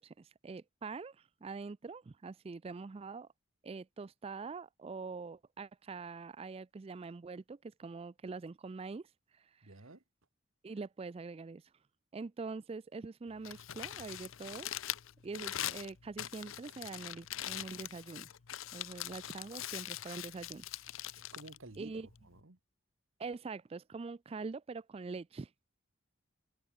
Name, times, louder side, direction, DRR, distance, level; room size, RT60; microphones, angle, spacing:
voice 1, 0.0-3.3 3.6-9.1 9.3-9.7 10.6-11.6 12.1-14.7 15.2-18.3 18.7-20.7 21.8-22.1 23.2-25.5, right 4 dB, 25° right, 0.3 m, -44 dB
voice 2, 9.6-10.0 18.7-18.8 21.3-22.6, right 2 dB, 70° right, 1.6 m, -53 dB
Crumpling crinkling, 13.3-22.4, left 12 dB, 70° left, 0.7 m, -43 dB
head